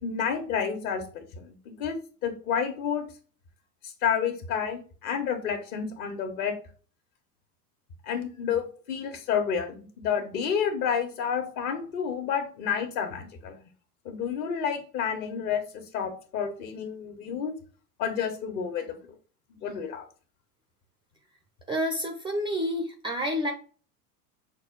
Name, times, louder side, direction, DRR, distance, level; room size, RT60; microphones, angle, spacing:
voice 1, 0.0-3.1 4.0-6.6 8.0-13.6 14.0-17.5 18.0-19.0 19.5-20.0, left 7 dB, 60° left, 6 dB, 1.4 m, -30 dB
voice 2, 21.7-23.5, equal, 10° right, 4 dB, 0.3 m, -29 dB
6.1 x 2.3 x 3.9 m, 0.39 s
hypercardioid pair, 90°, 48 cm